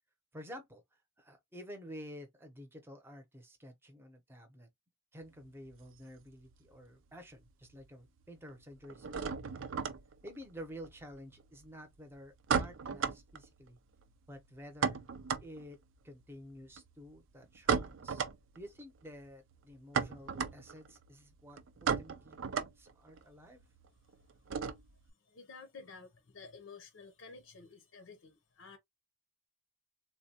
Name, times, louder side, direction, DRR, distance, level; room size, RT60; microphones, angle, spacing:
voice 1, 0.3-4.7 5.1-9.4 10.2-13.8 14.3-15.0 15.4-18.2 18.6-23.6, equal, 10° right, 0.7 m, -51 dB
sound 1, 5.2-6.9 7.1-7.8 8.1-25.1, right 6 dB, 75° right, 0.5 m, -37 dB
voice 2, 25.2-28.8, left 4 dB, 85° left, 0.7 m, -52 dB
3.7 x 2.2 x 2.7 m
head